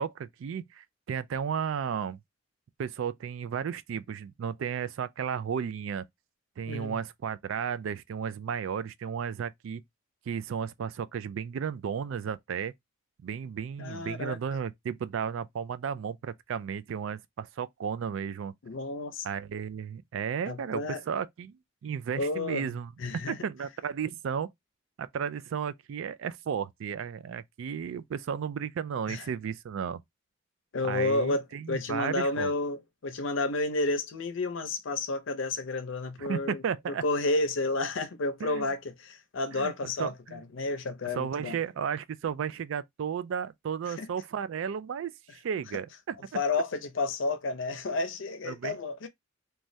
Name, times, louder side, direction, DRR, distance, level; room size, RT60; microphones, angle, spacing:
voice 1, 0.0-2.2 2.8-6.0 6.6-9.8 10.3-12.7 13.2-18.5 19.2-22.9 23.3-24.5 25.0-30.0 30.8-32.5 36.2-37.0 38.4-38.7 39.5-40.4 41.1-46.1 48.4-48.8, right 7 dB, 75° right, 0.3 m, -34 dB
voice 2, 6.7-7.0 13.8-14.4 18.6-19.3 20.5-21.0 22.2-22.7 23.0-23.4 29.1-29.2 30.7-36.6 37.0-41.6 43.9-44.1 46.3-49.1, left 2 dB, 75° left, 0.6 m, -31 dB
3.1 x 2.3 x 2.6 m
head